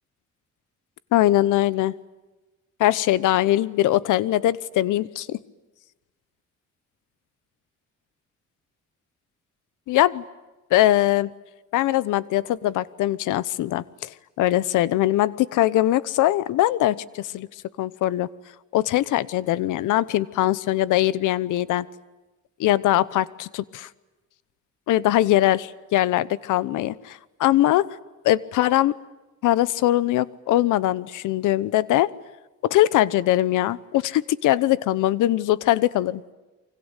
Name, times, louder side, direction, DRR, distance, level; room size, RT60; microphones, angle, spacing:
voice 1, 1.1-1.9 2.8-5.4 9.9-10.2 10.7-11.3 11.7-14.1 14.4-17.5 17.8-18.3 18.7-21.9 22.6-23.9 24.9-27.9 28.2-28.9 29.4-32.1 32.6-36.2, left 14 dB, 90° left, 19 dB, 1.0 m, -21 dB
29.0 x 25.0 x 8.2 m, 1.1 s
cardioid pair, 90°, 30 cm